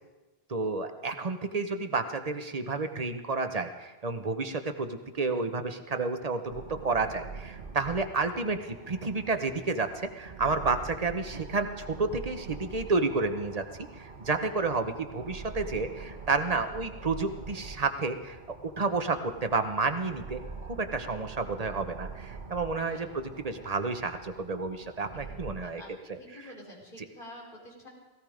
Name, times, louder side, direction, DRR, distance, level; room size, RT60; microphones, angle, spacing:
voice 1, 0.5-13.6 14.0-18.4 18.6-25.8, right 3 dB, 35° right, 7 dB, 1.1 m, -30 dB
sound 1, 6.5-25.5, right 4 dB, 60° right, 1.5 m, -45 dB
voice 2, 26.1-27.9, left 1 dB, 50° left, -2 dB, 4.1 m, -48 dB
17.5 x 15.5 x 5.1 m, 1.1 s
omnidirectional pair, 1.1 m